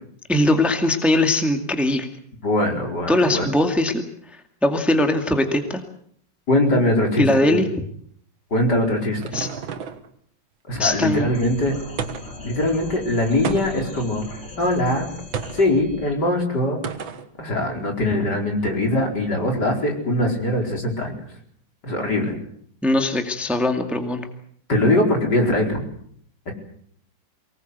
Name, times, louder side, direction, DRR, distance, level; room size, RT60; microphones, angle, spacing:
voice 1, 0.3-2.1 3.1-4.0 4.6-5.8 7.2-7.7 9.3-9.5 10.8-11.3 22.8-24.3, left 1 dB, ahead, 5 dB, 2.0 m, -20 dB
voice 2, 2.4-3.5 6.5-7.6 8.5-9.4 10.7-11.8 12.4-14.3 14.6-15.1 15.5-16.8 17.4-21.1 21.8-22.4 24.7-25.8 26.5-26.6, left 1 dB, 55° left, 2 dB, 5.1 m, -22 dB
sound 1, 8.5-10.1 12.0-12.5 13.4-14.0 15.3-15.7 16.8-17.3, right 6 dB, 85° right, 2.3 m, -31 dB
sound 2, 10.9-16.1, left 3 dB, 75° left, 4.6 m, -39 dB
24.5 x 19.5 x 8.1 m, 0.64 s
omnidirectional pair, 2.1 m